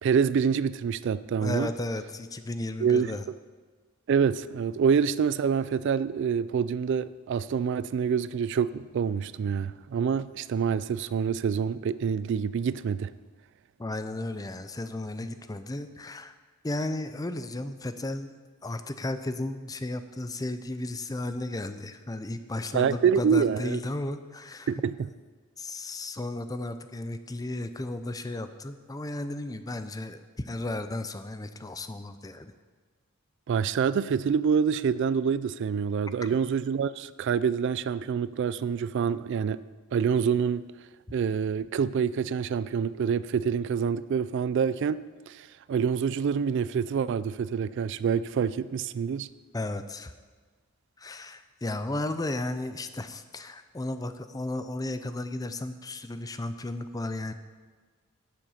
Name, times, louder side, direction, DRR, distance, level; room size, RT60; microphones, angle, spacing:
voice 1, 0.0-1.7 2.8-3.1 4.1-13.1 22.7-23.8 24.7-24.9 33.5-39.6 39.9-40.6 41.1-45.0 45.3-49.3, right 6 dB, 55° right, 16 dB, 0.3 m, -26 dB
voice 2, 1.4-3.2 13.8-16.3 16.6-18.3 18.6-24.8 25.6-32.5 49.5-50.1 51.0-57.3, left 2 dB, 15° left, 10 dB, 0.5 m, -34 dB
11.5 x 7.7 x 5.6 m, 1.4 s
head